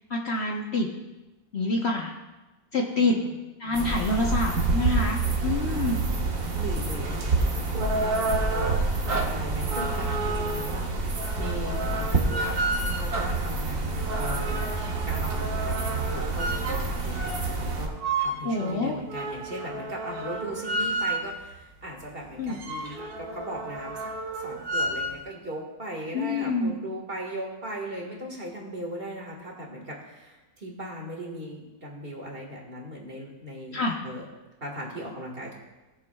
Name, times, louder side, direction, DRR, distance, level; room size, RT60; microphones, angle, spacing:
voice 1, 0.1-0.9 1.5-2.1 2.7-3.2 3.6-6.0 18.4-19.0 22.4-22.6 26.1-26.7 33.7-34.0, left 2 dB, 50° left, 0 dB, 1.1 m, -27 dB
voice 2, 2.7-3.4 5.6-5.9 6.6-8.8 9.1-10.8 11.4-12.6 13.0-14.6 15.0-34.3 34.6-35.6, equal, 40° right, -1 dB, 1.9 m, -38 dB
sound 1, 3.7-17.9, right 3 dB, 60° right, 1.7 m, -28 dB
sound 2, 7.5-21.5 22.0-22.1 22.3-25.2, right 2 dB, 85° right, 1.9 m, -32 dB
18.5 x 7.0 x 2.3 m, 1.1 s
omnidirectional pair, 1.6 m